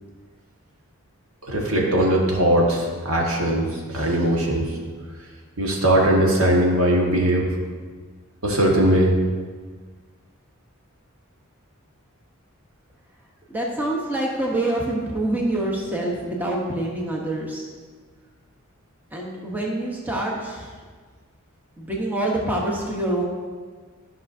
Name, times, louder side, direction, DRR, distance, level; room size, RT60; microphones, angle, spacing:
voice 1, 1.5-4.7 5.6-7.5 8.4-9.1, right 1 dB, 75° right, -2 dB, 1.5 m, -20 dB
voice 2, 13.5-17.7 19.1-20.7 21.8-23.2, right 1 dB, 10° right, -2 dB, 0.9 m, -26 dB
12.5 x 5.9 x 2.6 m, 1.5 s
head